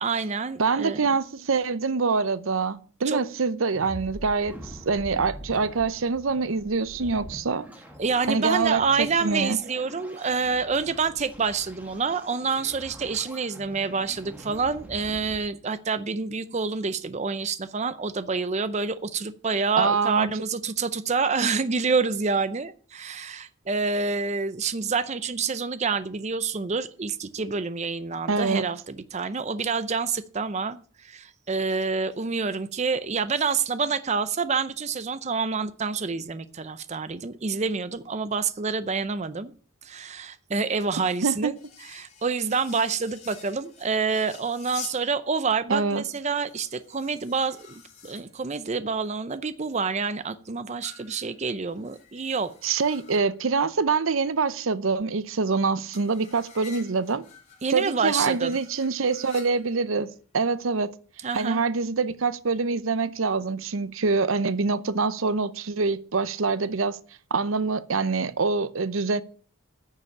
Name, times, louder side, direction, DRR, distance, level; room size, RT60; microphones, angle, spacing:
voice 1, 0.0-1.0 3.1-3.2 8.0-39.5 39.8-52.5 57.6-58.5 61.2-61.6, right 5 dB, 35° right, 0.5 m, -27 dB
voice 2, 0.6-7.7 8.3-9.6 19.8-20.3 28.3-28.7 41.2-41.5 45.7-46.0 52.6-57.3 57.7-60.9 61.3-67.0 67.3-69.2, right 4 dB, 75° right, 0.7 m, -25 dB
sound 1, 3.7-15.4, equal, 5° right, 2.0 m, -44 dB
sound 2, 41.6-45.0 45.7-48.3 50.8-53.4 55.9-60.0, left 6 dB, 35° left, 3.8 m, -48 dB
9.8 x 6.9 x 8.6 m
head